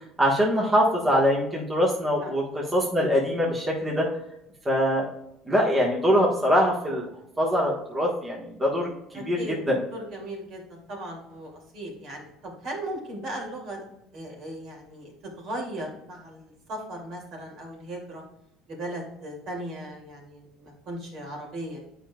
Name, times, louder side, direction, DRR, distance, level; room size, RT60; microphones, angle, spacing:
voice 1, 0.2-4.1 4.6-5.0 5.5-7.0 7.4-9.8, equal, 20° right, -3 dB, 1.4 m, -23 dB
voice 2, 9.1-9.6 9.9-13.8 14.1-18.2 18.7-21.8, right 1 dB, 55° right, -1 dB, 2.4 m, -37 dB
8.7 x 5.1 x 2.3 m, 0.83 s
cardioid pair, 110°, 0 cm